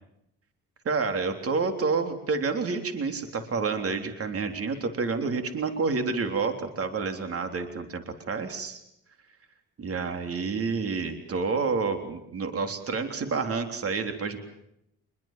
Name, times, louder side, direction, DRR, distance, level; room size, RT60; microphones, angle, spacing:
voice 1, 0.9-8.8 9.8-14.4, right 4 dB, 50° right, 6 dB, 3.6 m, -29 dB
25.5 x 22.5 x 7.6 m, 0.78 s
cardioid pair, 90°, 30 cm